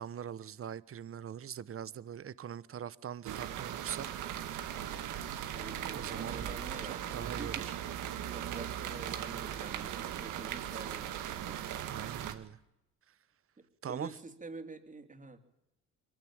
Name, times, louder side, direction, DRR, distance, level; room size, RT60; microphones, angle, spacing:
voice 1, 0.0-4.1 5.0-5.2 5.9-6.4 6.8-7.7 11.9-12.6 13.8-14.1, right 9 dB, 45° right, 1.1 m, -42 dB
sound 1, 3.2-12.3, right 10 dB, 90° right, 2.0 m, -38 dB
voice 2, 5.5-7.8 8.3-11.6 13.6-15.4, right 3 dB, 25° right, 3.5 m, -47 dB
22.5 x 16.5 x 9.0 m
cardioid pair, 90°, 30 cm